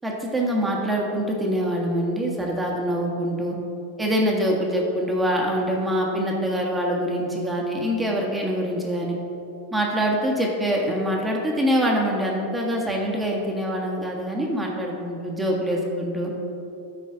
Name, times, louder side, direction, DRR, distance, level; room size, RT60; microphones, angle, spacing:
voice 1, 0.0-3.6 4.0-9.2 9.7-16.3, equal, 10° right, -2 dB, 1.5 m, -24 dB
13.0 x 5.0 x 3.9 m, 2.8 s
supercardioid pair, 125°, 0 cm